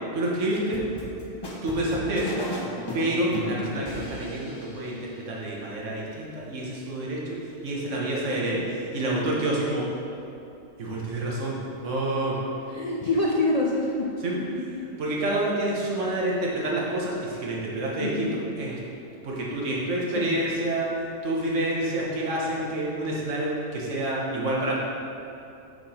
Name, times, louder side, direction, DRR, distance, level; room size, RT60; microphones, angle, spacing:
voice 1, 0.1-0.8 1.6-2.4 2.9-9.9 10.8-11.6 11.8-12.4 14.2-14.4 15.0-18.8 19.2-20.9 21.2-24.8, right 1 dB, 65° right, -4 dB, 1.5 m, -28 dB
sound 1, 0.5-4.8, left 1 dB, 25° left, 0.7 m, -35 dB
voice 2, 12.7-14.1 14.5-14.8 18.0-18.4 20.2-20.4, left 2 dB, 75° left, -3 dB, 0.3 m, -26 dB
5.9 x 5.7 x 4.3 m, 2.7 s
omnidirectional pair, 1.4 m